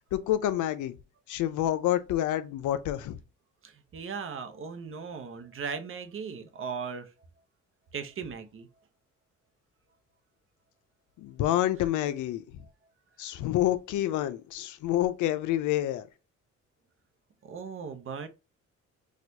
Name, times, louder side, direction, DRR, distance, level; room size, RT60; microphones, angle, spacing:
voice 1, 0.1-1.0 1.3-3.2 11.2-12.6 13.2-16.1, left 13 dB, 80° left, 0.5 m, -28 dB
voice 2, 3.6-7.1 7.9-8.7 17.4-18.3, right 6 dB, 45° right, 0.7 m, -38 dB
4.3 x 2.4 x 2.7 m
cardioid pair, 90°, 30 cm